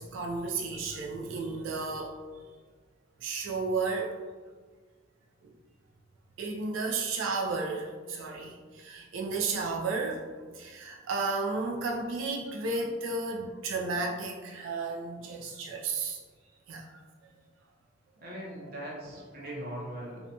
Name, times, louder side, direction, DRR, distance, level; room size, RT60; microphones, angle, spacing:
voice 1, 0.0-2.1 3.2-4.2 6.4-10.2 10.5-16.2 16.7-16.8, right 3 dB, 70° right, 0 dB, 0.3 m, -33 dB
voice 2, 18.2-20.2, right 1 dB, 50° right, -4 dB, 0.7 m, -40 dB
2.7 x 2.1 x 2.7 m, 1.5 s
head